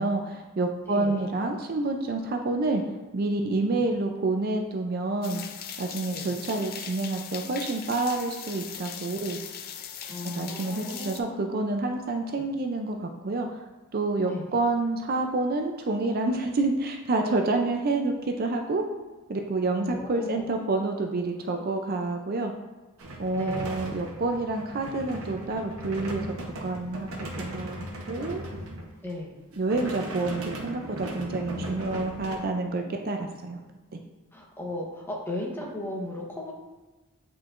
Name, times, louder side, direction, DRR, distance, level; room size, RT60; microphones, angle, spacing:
voice 1, 0.0-2.8 3.1-5.4 5.8-9.4 10.2-13.6 13.9-18.8 19.3-22.5 23.2-26.4 26.6-27.1 27.4-27.8 28.1-28.4 29.6-33.6 33.9-34.0, right 2 dB, 45° right, 4 dB, 0.4 m, -28 dB
voice 2, 0.9-1.3 3.8-3.9 6.1-6.3 10.0-11.4 12.3-12.5 14.2-14.5 19.7-20.4 23.3-23.7 29.0-29.4 31.5-32.0 34.3-36.5, left 1 dB, 10° left, -2 dB, 1.0 m, -36 dB
sound 1, 5.2-11.2, left 8 dB, 45° left, 0.4 m, -39 dB
sound 2, 23.0-29.1 29.5-32.4, right 1 dB, 70° right, 0.9 m, -37 dB
8.2 x 4.5 x 2.5 m, 1.2 s
head